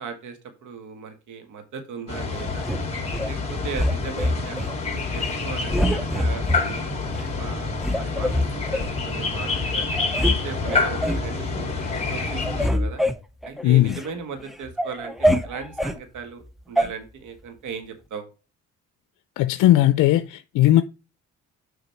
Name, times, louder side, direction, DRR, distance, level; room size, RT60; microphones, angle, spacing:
voice 1, 0.0-2.7 3.2-4.6 4.9-6.8 7.4-11.6 12.1-13.1 13.4-18.3, right 6 dB, 75° right, 1.7 m, -37 dB
sound 1, 2.1-12.7, left 4 dB, 20° left, 2.4 m, -27 dB
sound 2, 2.6-3.3 3.7-4.7 5.1-5.4 5.7-6.6 7.2-7.3 7.8-8.9 9.5-9.6 9.9-10.4 10.7-11.3 11.7-12.0 12.3-14.1 14.5-16.0 16.8-16.9, equal, ahead, 0.7 m, -25 dB
voice 2, 13.6-14.0 19.4-20.8, left 14 dB, 90° left, 0.5 m, -17 dB
6.9 x 3.9 x 4.4 m
cardioid pair, 90°, 30 cm